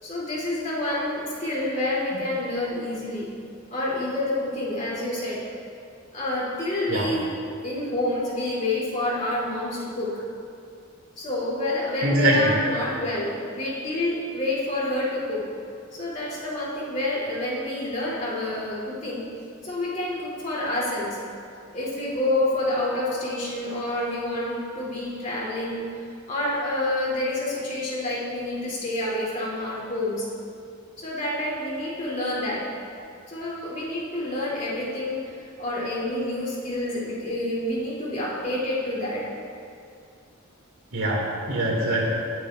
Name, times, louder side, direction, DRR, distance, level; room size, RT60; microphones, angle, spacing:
voice 1, 0.0-3.3 3.7-5.4 6.1-7.3 7.6-10.1 11.2-15.4 15.9-19.3 19.6-21.2 21.7-25.9 26.3-30.3 31.0-32.7 33.3-35.3 35.6-39.3, left 1 dB, 40° left, -7 dB, 3.0 m, -28 dB
voice 2, 12.0-12.5 40.9-42.1, right 1 dB, 85° right, -2 dB, 2.3 m, -23 dB
19.0 x 9.1 x 2.5 m, 2.4 s
head